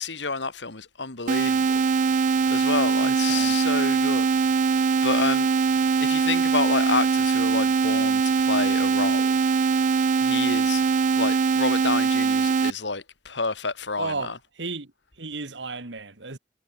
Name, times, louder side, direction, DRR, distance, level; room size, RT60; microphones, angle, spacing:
voice 1, 0.0-1.8 2.5-4.3 5.0-5.5 6.0-9.4 10.2-10.8 11.2-14.4, left 4 dB, 80° left, 2.7 m, -29 dB
sound 1, 1.3-12.7, right 5 dB, 45° right, 0.4 m, -22 dB
voice 2, 3.0-3.6 14.0-14.3 14.6-14.9 15.2-16.4, right 3 dB, 85° right, 2.2 m, -33 dB
head